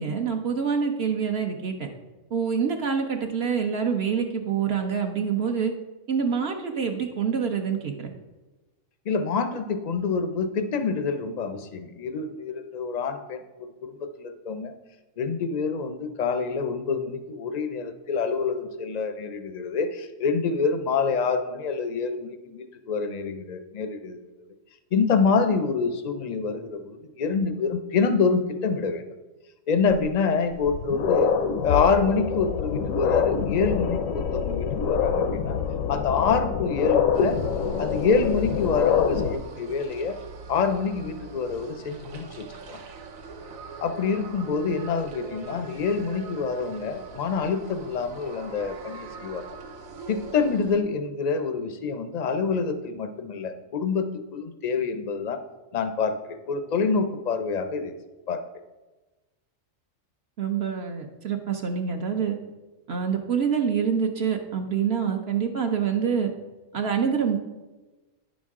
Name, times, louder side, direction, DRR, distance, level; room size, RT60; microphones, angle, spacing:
voice 1, 0.0-1.9 2.3-5.7 6.1-8.1 60.4-62.3 62.9-66.3 66.7-67.4, right 6 dB, 55° right, 4 dB, 0.9 m, -26 dB
voice 2, 9.1-13.4 13.8-14.7 15.2-24.2 24.9-29.1 29.7-31.3 31.6-35.6 35.9-37.4 37.8-40.2 40.5-42.8 43.8-49.4 50.1-54.1 54.3-55.4 55.7-57.9 58.3-58.4, left 5 dB, 50° left, 9 dB, 0.5 m, -26 dB
sound 1, 29.9-30.0 30.5-39.3, left 7 dB, 85° left, 1.1 m, -25 dB
sound 2, 37.1-50.8, right 4 dB, 85° right, 1.2 m, -42 dB
9.5 x 6.2 x 3.6 m, 1.2 s
omnidirectional pair, 1.4 m